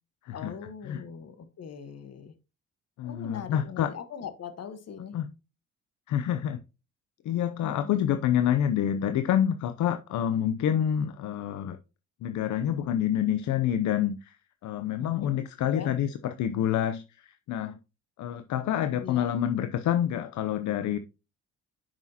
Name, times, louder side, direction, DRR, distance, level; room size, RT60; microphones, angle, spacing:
voice 1, 0.3-2.3 3.0-5.2 7.6-7.9 15.0-15.9 19.0-19.3, left 7 dB, 55° left, 1.3 m, -41 dB
voice 2, 3.0-3.9 5.1-5.3 6.1-6.6 7.2-11.8 12.2-14.4 14.6-17.7 18.2-21.0, left 10 dB, 70° left, 0.6 m, -27 dB
8.4 x 6.2 x 2.8 m
cardioid pair, 90°, 30 cm